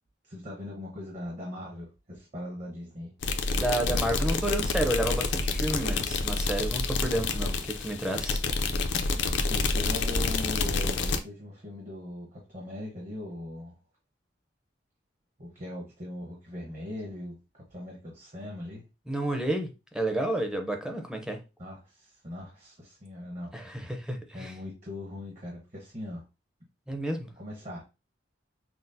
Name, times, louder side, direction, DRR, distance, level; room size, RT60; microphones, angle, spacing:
voice 1, 0.2-3.1 9.5-13.7 15.4-18.8 21.6-23.9 24.3-26.2 27.4-27.8, left 1 dB, 40° right, 1.0 m, -40 dB
sound 1, 3.2-11.2, left 3 dB, 75° left, 0.5 m, -28 dB
voice 2, 3.5-8.4 19.1-21.4 23.5-24.5 26.9-27.3, right 1 dB, 5° right, 0.5 m, -31 dB
5.9 x 2.0 x 2.6 m
head